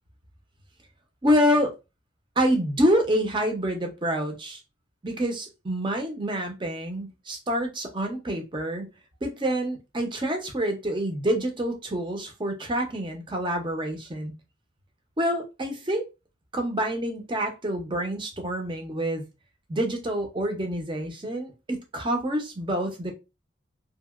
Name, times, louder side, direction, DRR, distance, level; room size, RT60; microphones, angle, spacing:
voice 1, 1.2-1.7 2.4-4.6 5.0-8.9 9.2-14.3 15.2-16.1 16.5-19.2 19.7-23.1, equal, 25° right, 0.6 m, -27 dB
2.8 x 2.6 x 2.4 m
head